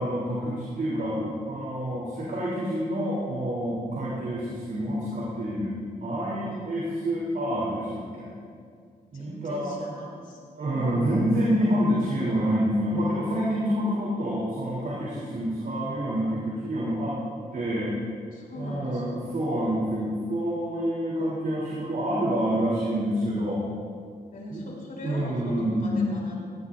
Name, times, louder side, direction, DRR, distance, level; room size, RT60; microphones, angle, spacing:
voice 1, 0.0-5.7 6.0-8.3 9.1-9.7 10.6-17.2 17.5-18.0 18.5-23.6 24.5-24.7 25.0-26.2, equal, 65° right, -7 dB, 3.7 m, -27 dB
voice 2, 6.4-7.3 9.1-11.1 18.3-19.3 24.3-26.3, left 1 dB, 60° left, -3 dB, 3.8 m, -41 dB
18.5 x 17.5 x 2.7 m, 2.2 s
cardioid pair, 100°, 16 cm